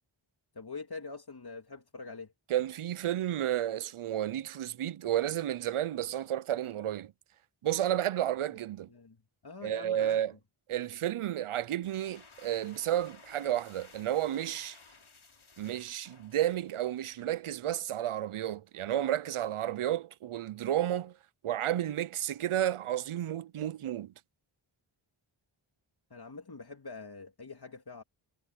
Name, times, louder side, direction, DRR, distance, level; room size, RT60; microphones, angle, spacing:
voice 1, 0.5-2.3 8.9-10.2 26.1-28.0, left 4 dB, 50° left, 2.5 m, -44 dB
voice 2, 2.5-7.1 7.6-8.9 9.6-10.3 10.7-14.8 15.6-21.1 21.4-24.1, right 12 dB, 85° right, 0.6 m, -32 dB
sound 1, 11.6-17.4, left 4 dB, 75° left, 4.5 m, -57 dB
wide cardioid pair, 60°, 49 cm